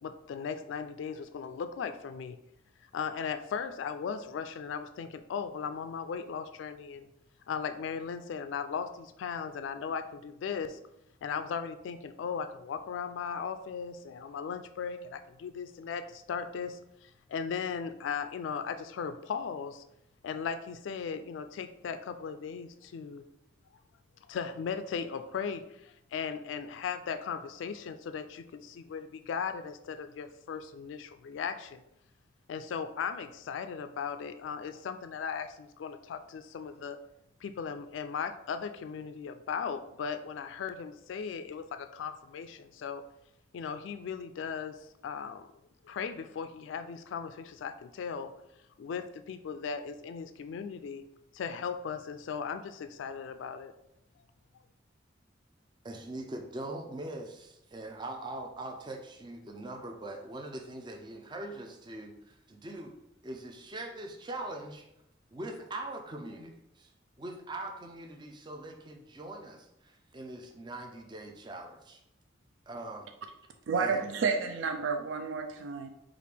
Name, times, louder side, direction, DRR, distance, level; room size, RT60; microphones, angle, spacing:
voice 1, 0.0-2.4 2.9-7.1 7.5-10.8 11.2-19.8 20.2-23.2 24.3-31.8 32.5-37.0 37.4-43.0 43.5-45.5 45.8-48.3 48.8-51.0 51.3-53.7, left 6 dB, 80° left, 9 dB, 0.3 m, -37 dB
voice 2, 55.8-62.9 63.2-64.8 65.3-66.9 67.2-72.0 72.7-73.1 73.8-74.0, right 2 dB, 25° right, 2 dB, 0.4 m, -42 dB
voice 3, 73.7-75.9, right 5 dB, 85° right, 5 dB, 0.4 m, -30 dB
4.9 x 2.4 x 3.4 m, 0.82 s
head